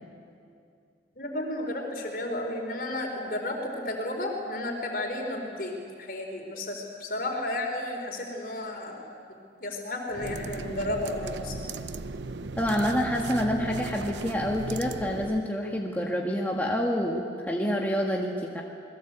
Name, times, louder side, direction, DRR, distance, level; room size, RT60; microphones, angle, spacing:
voice 1, 1.2-9.0 9.6-11.6, left 1 dB, 50° left, 3 dB, 4.2 m, -33 dB
sound 1, 10.1-15.5, right 3 dB, 80° right, 0.8 m, -37 dB
voice 2, 12.6-18.6, equal, 10° left, -1 dB, 1.7 m, -27 dB
28.5 x 21.0 x 8.3 m, 2.5 s
head